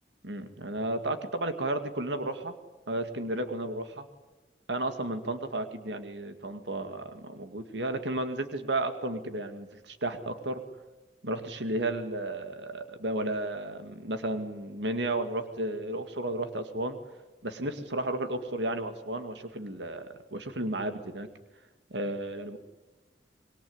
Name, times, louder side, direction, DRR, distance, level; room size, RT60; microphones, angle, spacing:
voice 1, 0.2-2.5 2.9-4.1 4.7-10.6 11.2-17.0 17.4-21.3 21.9-22.6, right 1 dB, 90° right, 8 dB, 2.2 m, -33 dB
26.0 x 22.5 x 9.8 m, 1.1 s
head